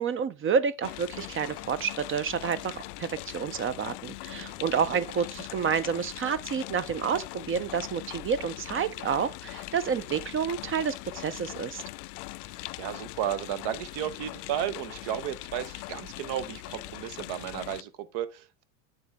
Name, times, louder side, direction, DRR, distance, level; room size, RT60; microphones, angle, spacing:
voice 1, 0.0-11.8, right 7 dB, 30° right, 0.5 m, -29 dB
sound 1, 0.8-17.8, left 20 dB, 70° left, 0.5 m, -41 dB
voice 2, 12.8-18.6, right 11 dB, 60° right, 1.1 m, -33 dB
9.4 x 4.0 x 3.5 m
supercardioid pair, 105°, 45 cm